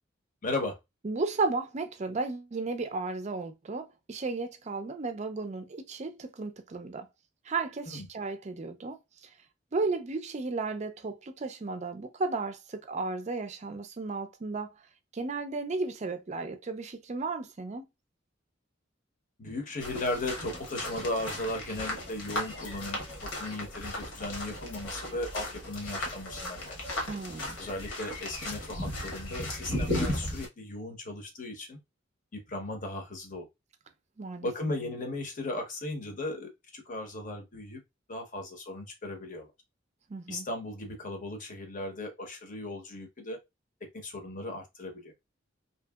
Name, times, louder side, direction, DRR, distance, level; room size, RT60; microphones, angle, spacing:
voice 1, 0.4-0.8 7.9-8.1 19.4-26.8 27.6-31.8 32.3-33.5 34.4-37.8 38.1-39.5 40.3-43.4 43.8-45.1, left 2 dB, 40° left, 0.8 m, -36 dB
voice 2, 1.0-7.1 7.5-9.0 9.2-9.3 9.7-14.7 15.1-17.8 27.1-27.6 34.2-34.5 40.1-40.5, right 3 dB, 35° right, 0.4 m, -34 dB
sound 1, 19.8-30.5, left 1 dB, 70° left, 1.1 m, -36 dB
2.8 x 2.7 x 2.3 m
head